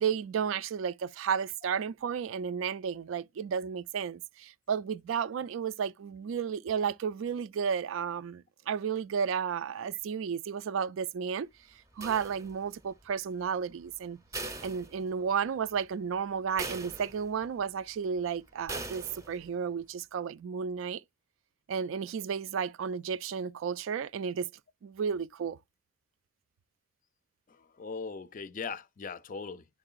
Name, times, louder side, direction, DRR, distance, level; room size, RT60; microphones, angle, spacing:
voice 1, 0.0-11.5 12.0-14.2 14.6-21.0 21.7-24.5 24.8-25.6, right 7 dB, 75° right, 0.3 m, -33 dB
sound 1, 12.0-12.8 14.3-15.5 15.9-16.0 16.6-17.5 18.7-19.5, right 2 dB, 15° right, 0.6 m, -41 dB
voice 2, 27.5-29.7, left 5 dB, 45° left, 0.4 m, -39 dB
10.5 x 3.8 x 2.4 m
head